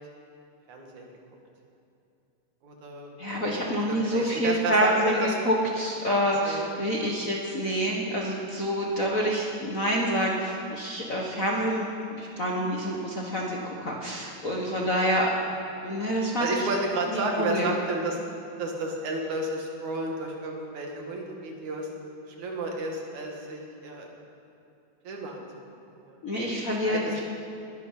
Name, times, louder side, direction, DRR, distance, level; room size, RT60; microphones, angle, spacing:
voice 1, 0.7-1.1 2.6-3.1 3.7-5.3 6.4-6.7 7.0-7.1 16.4-18.2 18.6-21.9 22.3-24.1 25.0-25.4 26.1-26.2 26.8-27.2, right 2 dB, 80° right, 1 dB, 3.4 m, -31 dB
voice 2, 3.2-11.9 12.2-15.3 15.8-16.7 17.1-17.7 26.2-27.2, equal, 40° left, -2 dB, 1.3 m, -27 dB
20.0 x 12.0 x 5.7 m, 2.7 s
omnidirectional pair, 3.3 m